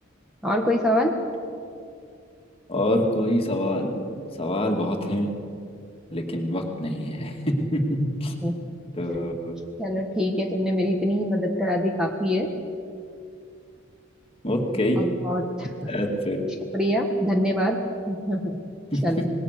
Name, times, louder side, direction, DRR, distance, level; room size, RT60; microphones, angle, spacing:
voice 1, 0.4-1.1 8.4-8.5 9.8-12.5 15.0-15.9 16.7-17.8 18.1-18.6 19.0-19.2, equal, 5° right, 1 dB, 1.5 m, -24 dB
voice 2, 2.7-4.0 4.4-5.3 6.1-8.3 8.9-9.5 14.4-15.0 15.9-16.4 18.9-19.3, left 1 dB, 30° left, 2 dB, 2.4 m, -25 dB
26.0 x 20.5 x 6.8 m, 2.4 s
head